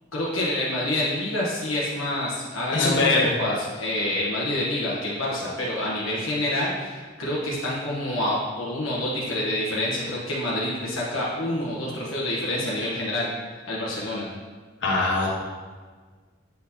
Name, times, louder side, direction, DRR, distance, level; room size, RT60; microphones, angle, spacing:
voice 1, 0.1-13.3 13.7-14.3, left 1 dB, 80° left, -6 dB, 1.1 m, -27 dB
voice 2, 2.7-3.2 14.8-15.3, left 3 dB, 65° left, -4 dB, 1.3 m, -21 dB
8.2 x 4.4 x 2.8 m, 1.5 s
head